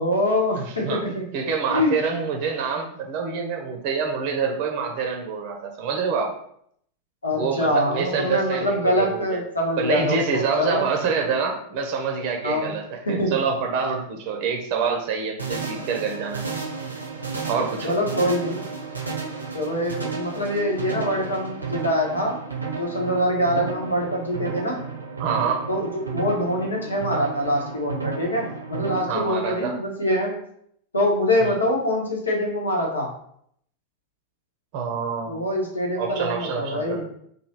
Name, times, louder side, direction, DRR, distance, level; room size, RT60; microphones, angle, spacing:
voice 1, 0.0-1.3 1.7-2.0 7.2-10.8 12.4-12.7 13.1-13.4 17.8-18.6 19.5-22.3 22.7-24.8 25.7-30.3 30.9-33.1 35.2-37.0, left 1 dB, 75° left, -1 dB, 1.0 m, -24 dB
voice 2, 0.6-6.3 7.3-9.4 9.8-16.5 17.5-17.9 25.2-25.7 29.1-29.7 31.4-31.6 34.7-35.4 36.0-37.0, right 5 dB, 45° right, 2 dB, 0.6 m, -26 dB
sound 1, 15.4-29.0, right 5 dB, 80° right, 0.7 m, -32 dB
3.2 x 2.7 x 4.0 m, 0.67 s
figure-of-eight pair, 90°, 0 cm